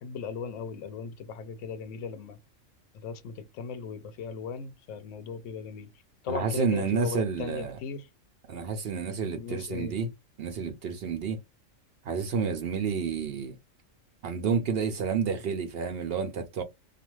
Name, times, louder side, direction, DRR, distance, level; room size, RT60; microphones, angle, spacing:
voice 1, 0.0-2.4 3.0-5.9 6.2-8.0 9.3-9.9, left 6 dB, 75° left, 0.9 m, -37 dB
voice 2, 6.3-7.8 8.5-10.1 10.4-11.4 12.0-13.6 14.2-16.6, right 5 dB, 65° right, 0.6 m, -30 dB
2.5 x 2.3 x 3.0 m
omnidirectional pair, 1.3 m